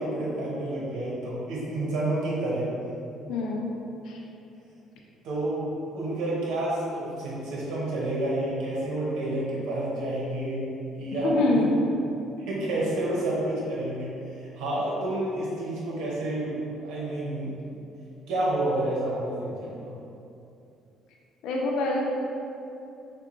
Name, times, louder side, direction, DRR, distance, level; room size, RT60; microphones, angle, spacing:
voice 1, 0.0-2.7 5.2-11.4 12.5-17.6 18.3-19.9, right 1 dB, 85° right, -5 dB, 1.3 m, -29 dB
voice 2, 3.3-3.7 4.0-4.2 11.1-11.7 21.4-22.0, left 2 dB, 75° left, -1 dB, 0.5 m, -25 dB
6.7 x 2.5 x 3.1 m, 2.7 s
cardioid pair, 150°, 0 cm